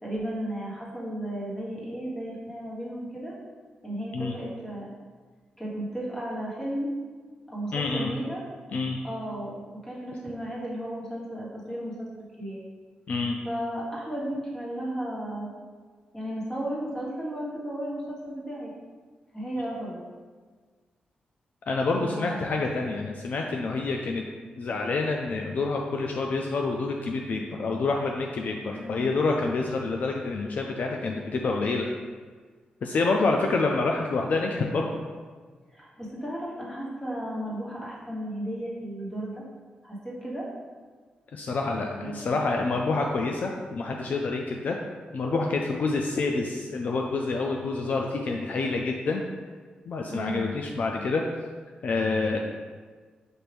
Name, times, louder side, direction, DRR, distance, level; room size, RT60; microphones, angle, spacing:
voice 1, 0.0-3.3 3.8-4.9 5.6-6.9 7.5-8.4 9.0-12.6 13.4-15.5 16.1-18.7 19.3-20.0 22.0-22.6 28.7-29.1 35.7-39.4 39.8-40.5 42.0-42.4 50.0-50.5, right 1 dB, 15° left, -6 dB, 1.4 m, -34 dB
voice 2, 7.7-8.1 8.7-9.0 13.1-13.4 21.7-24.2 24.6-31.9 32.8-34.9 41.3-44.8 45.1-49.2 49.9-51.2 51.8-52.4, left 3 dB, 60° left, 1 dB, 0.4 m, -27 dB
5.8 x 2.6 x 3.4 m, 1.5 s
cardioid pair, 100°, 3 cm